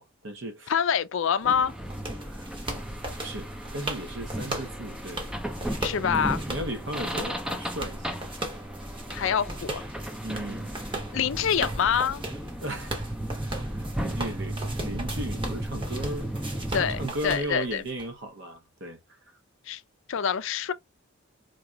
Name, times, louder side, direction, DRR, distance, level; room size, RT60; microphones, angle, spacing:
voice 1, 0.0-0.7 2.2-2.4 3.2-5.3 6.0-6.1 6.5-8.1 10.2-10.7 12.6-19.0, right 1 dB, 60° right, 0.8 m, -36 dB
voice 2, 0.7-1.7 5.8-6.4 9.1-9.8 11.1-12.2 16.7-17.8 19.7-19.8 20.1-20.7, left 7 dB, 65° left, 0.4 m, -26 dB
sound 1, 1.4-17.1, right 1 dB, 5° right, 0.4 m, -35 dB
sound 2, 1.5-18.1, right 1 dB, 25° right, 0.8 m, -38 dB
3.9 x 2.9 x 2.3 m
head